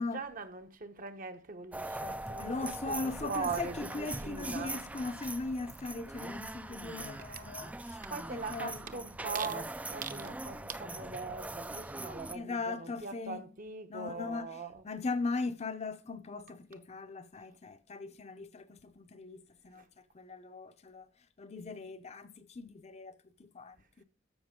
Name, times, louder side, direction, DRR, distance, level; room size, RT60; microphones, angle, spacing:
voice 1, 0.0-4.8 7.3-7.5 7.8-14.8 19.7-19.9, right 4 dB, 45° right, 0.9 m, -41 dB
sound 1, 1.7-12.4, right 2 dB, 10° right, 0.3 m, -42 dB
voice 2, 2.4-8.0 8.3-8.9 12.3-13.4 13.9-19.8 20.1-21.1 21.4-24.0, left 3 dB, 35° left, 0.6 m, -39 dB
13.0 x 5.9 x 3.7 m
head